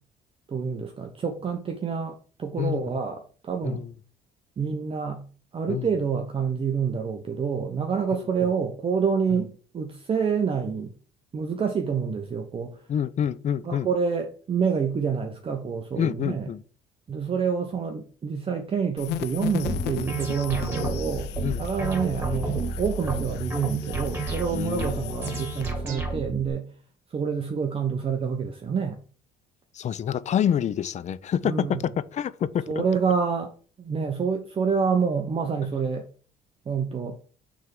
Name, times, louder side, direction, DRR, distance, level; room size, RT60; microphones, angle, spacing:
voice 1, 0.5-3.8 4.6-5.2 5.5-10.9 11.3-12.8 13.6-16.5 17.1-26.6 27.1-29.0 31.4-31.8 32.7-33.5 33.8-36.0 36.7-37.2, right 6 dB, 35° right, 1.0 m, -27 dB
voice 2, 2.6-3.0 3.6-3.9 5.7-5.9 8.1-8.5 9.3-9.4 12.9-13.9 15.9-16.6 20.8-21.0 21.4-21.7 24.5-25.4 29.7-32.6, left 9 dB, 45° left, 0.5 m, -28 dB
sound 1, 19.0-25.7, left 11 dB, 80° left, 0.7 m, -36 dB
sound 2, 19.6-26.5, right 3 dB, 15° right, 2.9 m, -31 dB
6.2 x 3.6 x 6.0 m
cardioid pair, 110°, 17 cm